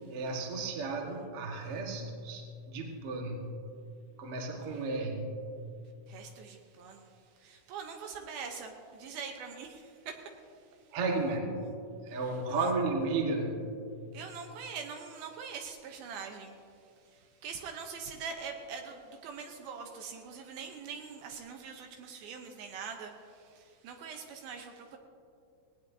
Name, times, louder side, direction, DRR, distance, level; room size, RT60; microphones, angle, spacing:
voice 1, 0.1-3.6 4.2-5.6 10.9-11.7 12.0-13.8, right 3 dB, 50° right, 1 dB, 1.9 m, -34 dB
voice 2, 6.1-7.1 7.4-10.2 12.5-12.7 14.1-16.6 17.4-25.0, right 6 dB, 75° right, 3 dB, 2.6 m, -43 dB
19.0 x 18.5 x 2.7 m, 2.4 s
omnidirectional pair, 4.5 m